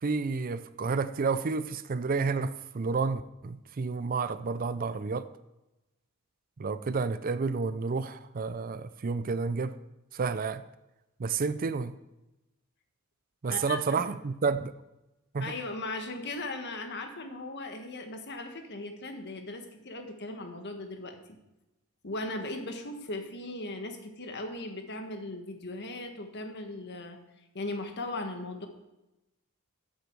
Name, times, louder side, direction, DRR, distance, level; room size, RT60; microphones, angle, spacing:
voice 1, 0.0-5.3 6.6-9.7 10.1-10.6 11.2-12.0 13.4-14.7 15.3-15.5, right 4 dB, 40° right, 0.5 m, -30 dB
voice 2, 13.5-14.0 15.4-21.2 22.0-27.2 27.5-28.7, left 2 dB, 50° left, 1.6 m, -38 dB
14.0 x 8.2 x 4.7 m
head